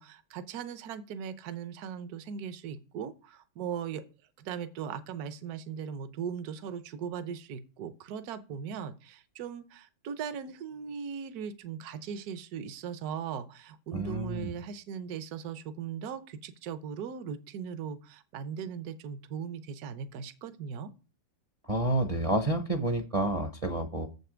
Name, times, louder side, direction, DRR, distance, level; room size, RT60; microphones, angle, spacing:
voice 1, 0.0-4.0 4.4-20.9, right 7 dB, 70° right, 11 dB, 1.2 m, -39 dB
voice 2, 13.9-14.5 21.6-24.1, right 1 dB, 35° right, 5 dB, 0.5 m, -29 dB
7.3 x 6.8 x 5.0 m, 0.33 s
omnidirectional pair, 1.8 m